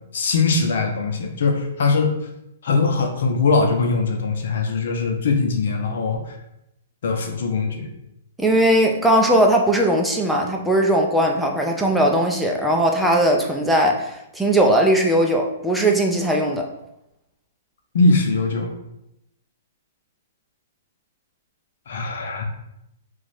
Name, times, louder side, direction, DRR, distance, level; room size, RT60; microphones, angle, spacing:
voice 1, 0.1-2.1 2.6-6.3 7.0-7.9 17.9-18.7 21.9-22.4, left 3 dB, 70° left, 3 dB, 0.7 m, -21 dB
voice 2, 8.4-16.7, right 1 dB, ahead, 0 dB, 0.5 m, -19 dB
2.9 x 2.4 x 4.2 m, 0.84 s
hypercardioid pair, 140°, 0 cm